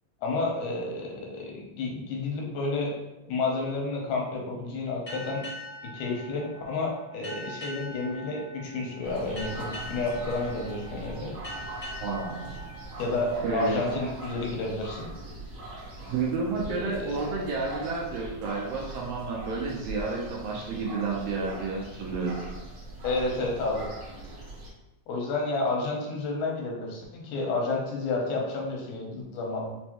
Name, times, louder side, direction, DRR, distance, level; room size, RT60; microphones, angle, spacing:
voice 1, 0.2-2.9 3.2-5.4 5.9-11.3 13.0-15.1 16.7-17.1 23.0-23.8 25.1-29.7, left 3 dB, 90° left, -1 dB, 2.3 m, -30 dB
sound 1, 5.1-14.2, equal, 70° left, 0.5 m, -42 dB
sound 2, 9.0-24.7, right 2 dB, 55° right, 1.1 m, -41 dB
voice 2, 12.0-12.5 13.4-13.8 16.1-22.3, right 4 dB, 75° right, -2 dB, 1.6 m, -31 dB
5.3 x 2.1 x 2.9 m, 0.99 s
omnidirectional pair, 3.3 m